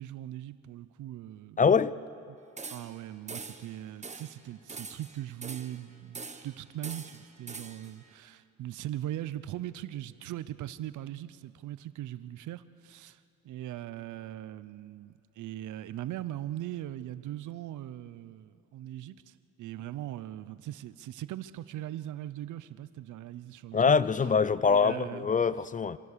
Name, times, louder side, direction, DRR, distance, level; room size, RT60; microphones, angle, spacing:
voice 1, 0.0-1.6 2.3-2.4 2.7-23.9 24.6-25.3, right 13 dB, 80° right, 0.7 m, -40 dB
voice 2, 1.6-2.0 23.7-26.0, left 5 dB, 25° left, 0.5 m, -24 dB
sound 1, 2.6-3.0 3.3-3.7 4.0-4.3 4.7-5.8 6.1-6.5 6.8-7.9, right 4 dB, 25° right, 1.4 m, -43 dB
26.5 x 16.0 x 6.8 m
cardioid pair, 90°, 30 cm